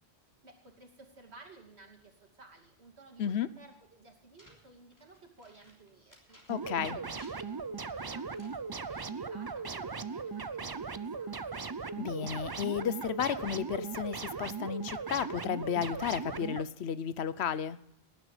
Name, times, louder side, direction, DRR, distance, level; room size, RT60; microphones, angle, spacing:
voice 1, 0.4-11.7, right 3 dB, 85° right, 1 dB, 3.0 m, -56 dB
sound 1, 4.4-6.8 7.1-9.0, equal, 15° left, 3.3 m, -60 dB
voice 2, 6.5-7.0 12.0-17.8, left 8 dB, 80° left, 16 dB, 1.0 m, -33 dB
sound 2, 6.5-16.6, right 5 dB, 30° right, 0.4 m, -38 dB
18.5 x 10.5 x 4.9 m, 0.74 s
omnidirectional pair, 1.1 m